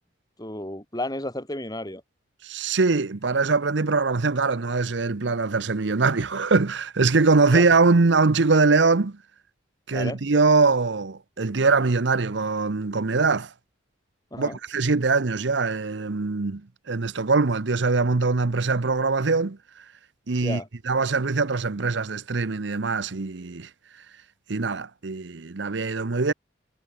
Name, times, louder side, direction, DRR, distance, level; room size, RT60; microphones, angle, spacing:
voice 1, 0.4-2.0 7.5-7.6 9.9-10.2 14.3-14.6 20.4-20.7, left 1 dB, 20° left, 7.0 m, -32 dB
voice 2, 2.4-9.2 9.9-13.5 14.4-16.6 16.9-19.8 20.3-23.7 24.5-26.3, right 4 dB, 65° right, 0.8 m, -22 dB
head